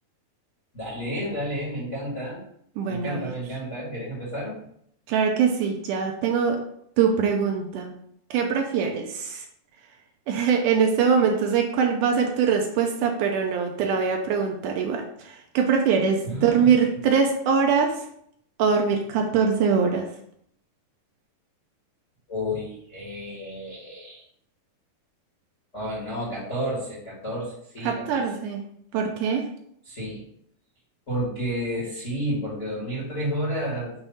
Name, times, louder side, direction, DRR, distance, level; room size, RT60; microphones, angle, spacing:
voice 1, 0.7-2.4 2.8-4.6 16.2-16.9 22.3-24.2 25.7-28.2 29.8-30.2 31.1-33.9, equal, 30° left, -7 dB, 1.5 m, -31 dB
voice 2, 2.8-3.4 5.1-6.6 7.0-7.9 8.3-9.4 10.3-18.1 18.6-20.1 27.8-28.6 28.9-29.5, right 6 dB, 80° right, 3 dB, 1.9 m, -23 dB
7.1 x 2.7 x 5.6 m, 0.69 s
omnidirectional pair, 4.2 m